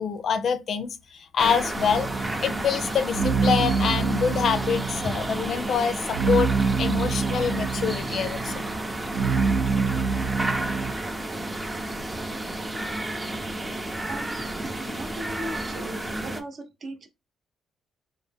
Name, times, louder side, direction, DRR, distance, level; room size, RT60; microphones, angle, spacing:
voice 1, 0.0-6.5 6.8-8.6, left 7 dB, 60° left, 0.5 m, -26 dB
sound 1, 1.4-16.4, right 1 dB, 15° right, 0.6 m, -32 dB
sound 2, 1.8-10.9, right 5 dB, 75° right, 0.4 m, -27 dB
voice 2, 14.1-14.5 14.8-17.1, right 1 dB, 50° right, 0.8 m, -38 dB
3.9 x 2.1 x 3.4 m
cardioid pair, 90°, 0 cm